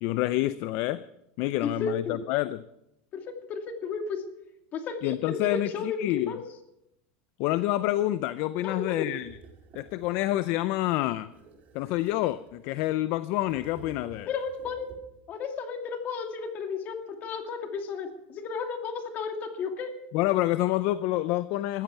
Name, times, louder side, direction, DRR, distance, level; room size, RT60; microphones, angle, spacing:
voice 1, 0.0-1.0 1.4-2.6 5.0-6.3 7.4-9.4 9.7-11.3 11.7-14.3 20.1-21.8, left 16 dB, 50° left, 0.5 m, -27 dB
voice 2, 1.6-2.2 3.1-4.2 4.7-6.4 8.6-9.1 14.3-15.0 15.3-19.9, left 5 dB, 30° left, 2.5 m, -33 dB
sound 1, 9.1-10.5 11.3-12.8 13.3-15.3, right 5 dB, 30° right, 2.6 m, -52 dB
21.0 x 14.5 x 4.7 m
supercardioid pair, 160°, 6 cm